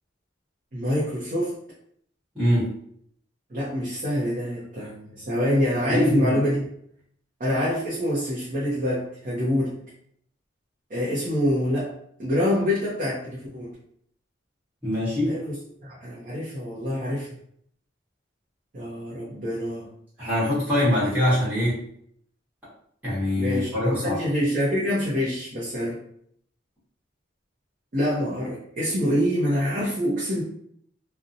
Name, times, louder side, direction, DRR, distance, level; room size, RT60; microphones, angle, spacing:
voice 1, 0.7-1.6 3.5-6.7 7.4-9.7 10.9-11.9 12.2-13.7 15.2-15.5 15.8-17.3 18.7-19.9 23.3-26.0 27.9-30.4, equal, 45° right, -7 dB, 0.6 m, -26 dB
voice 2, 2.3-2.7 5.9-6.4 14.8-15.4 20.2-21.8 23.0-24.2, left 1 dB, 10° right, -12 dB, 1.0 m, -23 dB
2.7 x 2.0 x 2.5 m, 0.67 s
head